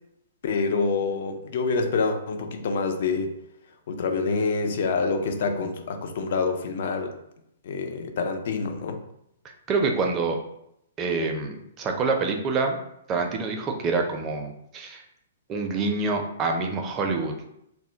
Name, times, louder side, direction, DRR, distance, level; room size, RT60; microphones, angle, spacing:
voice 1, 0.4-3.3 3.9-7.1 7.6-9.0, left 4 dB, 60° left, 6 dB, 0.4 m, -26 dB
voice 2, 9.7-10.4 11.0-12.8 13.1-15.0 15.5-17.3, right 4 dB, 25° right, 3 dB, 0.4 m, -26 dB
2.1 x 2.1 x 3.8 m, 0.78 s
hypercardioid pair, 135°, 0 cm